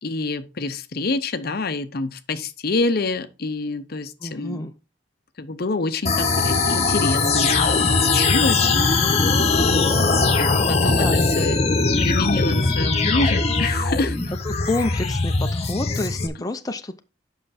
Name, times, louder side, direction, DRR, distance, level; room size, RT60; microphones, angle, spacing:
voice 1, 0.0-4.7 5.4-9.3 9.6-11.6 12.0-14.2, left 3 dB, 55° left, 0.7 m, -27 dB
voice 2, 4.2-4.7 10.8-11.2 12.6-13.1 14.5-17.0, left 2 dB, 20° left, 0.6 m, -29 dB
sound 1, 6.0-16.3, left 3 dB, 35° left, 1.1 m, -20 dB
7.8 x 5.8 x 4.1 m
head